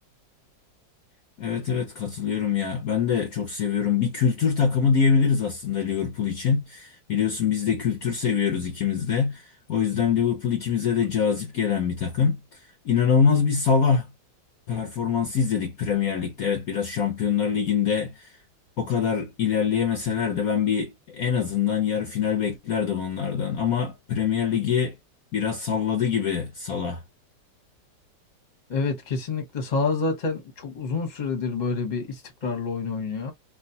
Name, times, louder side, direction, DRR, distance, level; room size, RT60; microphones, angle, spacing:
voice 1, 1.4-12.4 12.8-14.1 14.7-18.3 18.8-25.0 25.3-27.0, left 7 dB, 60° left, 1.1 m, -24 dB
voice 2, 28.7-33.3, left 4 dB, 30° left, 1.1 m, -28 dB
3.2 x 2.6 x 2.7 m
omnidirectional pair, 2.0 m